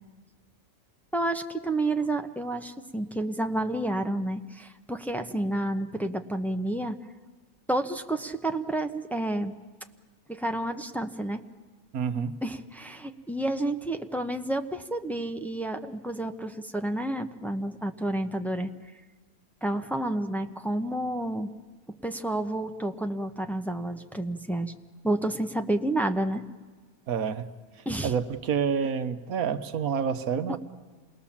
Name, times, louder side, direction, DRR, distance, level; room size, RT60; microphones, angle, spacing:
voice 1, 1.1-7.0 7.7-9.5 10.3-11.4 12.4-18.7 19.6-21.5 22.0-24.7 25.0-26.4 27.9-28.1, right 1 dB, ahead, 6 dB, 0.5 m, -30 dB
voice 2, 11.9-12.4 27.1-27.5 28.0-30.6, right 7 dB, 70° right, 10 dB, 1.4 m, -28 dB
27.5 x 20.0 x 7.2 m, 1.4 s
omnidirectional pair, 1.5 m